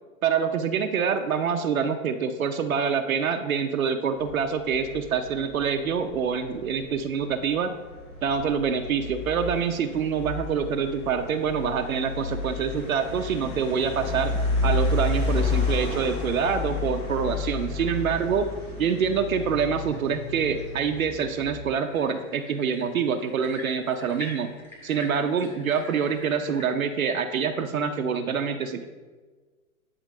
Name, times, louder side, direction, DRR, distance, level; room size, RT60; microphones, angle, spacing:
voice 1, 0.2-7.7 8.2-14.3 14.6-18.5 18.8-24.5 24.8-28.8, right 6 dB, 70° right, 6 dB, 0.7 m, -26 dB
sound 1, 4.2-21.6, left 3 dB, 80° left, 2.0 m, -31 dB
sound 2, 10.4-26.7, left 1 dB, 5° left, 1.5 m, -49 dB
8.9 x 4.3 x 3.7 m, 1.4 s
figure-of-eight pair, 115°, 42 cm